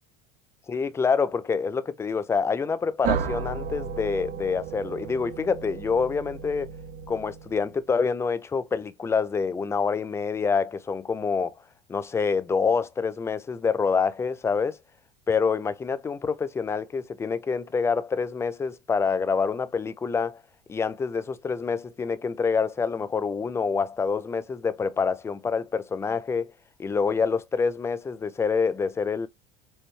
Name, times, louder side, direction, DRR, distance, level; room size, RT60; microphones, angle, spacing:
voice 1, 0.7-6.7 7.1-11.5 11.9-14.8 15.3-20.4 20.7-26.5 26.8-29.3, left 5 dB, 15° left, 0.3 m, -26 dB
sound 1, 3.0-7.7, right 7 dB, 45° right, 0.5 m, -34 dB
4.1 x 2.1 x 3.1 m
supercardioid pair, 110°, 19 cm